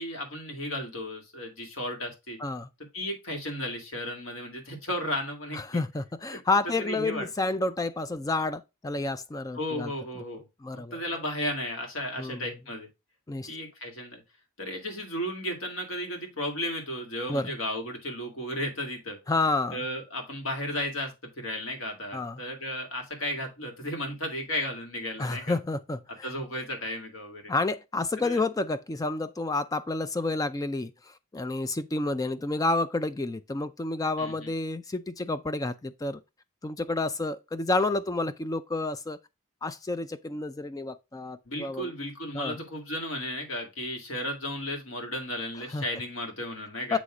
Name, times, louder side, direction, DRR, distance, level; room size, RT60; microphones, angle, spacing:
voice 1, 0.0-2.4 2.9-5.8 6.3-6.4 6.6-7.3 9.5-10.4 10.7-12.9 13.5-14.2 14.6-19.2 19.7-25.5 26.2-27.5 28.2-28.4 34.2-34.5 41.5-47.0, left 1 dB, 65° left, 2.0 m, -34 dB
voice 2, 5.5-9.9 10.6-11.0 12.2-12.5 13.3-13.5 17.3-17.5 19.3-19.8 22.1-22.4 25.2-26.0 27.5-30.9 31.3-36.2 36.6-39.2 39.6-41.9 42.3-42.6 45.7-45.8 46.9-47.0, left 2 dB, 15° left, 0.3 m, -29 dB
7.9 x 3.1 x 4.8 m
head